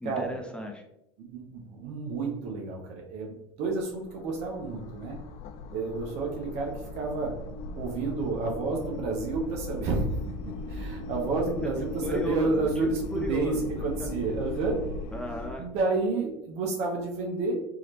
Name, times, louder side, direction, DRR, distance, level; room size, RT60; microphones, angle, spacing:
voice 1, 0.0-0.8 11.6-11.7 12.0-14.1 15.1-15.7, left 1 dB, 5° left, 2 dB, 0.6 m, -36 dB
voice 2, 1.2-5.2 5.7-7.4 7.7-14.8 15.6-17.6, right 3 dB, 60° right, 0 dB, 1.0 m, -30 dB
sound 1, 3.6-15.6, left 2 dB, 55° left, 0.4 m, -38 dB
3.9 x 3.1 x 3.0 m, 0.82 s
hypercardioid pair, 90°, 13 cm